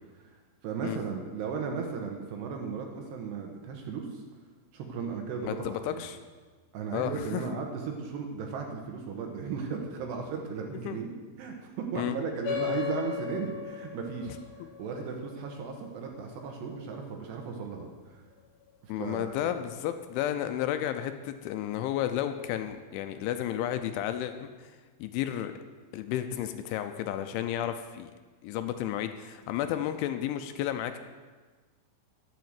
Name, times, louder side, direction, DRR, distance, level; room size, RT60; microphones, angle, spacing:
voice 1, 0.2-4.2 4.7-6.0 6.7-11.1 11.4-14.4 14.8-18.2 19.0-19.5, right 5 dB, 70° right, 2 dB, 3.0 m, -36 dB
voice 2, 5.5-6.2 6.9-7.4 10.9-11.0 11.9-12.2 14.6-14.7 18.9-24.7 25.0-25.5 25.9-28.1 28.4-31.0, left 11 dB, 80° left, 8 dB, 2.9 m, -32 dB
sound 1, 12.4-17.4, left 9 dB, 55° left, 3.7 m, -37 dB
12.0 x 8.0 x 7.6 m, 1.4 s
omnidirectional pair, 5.6 m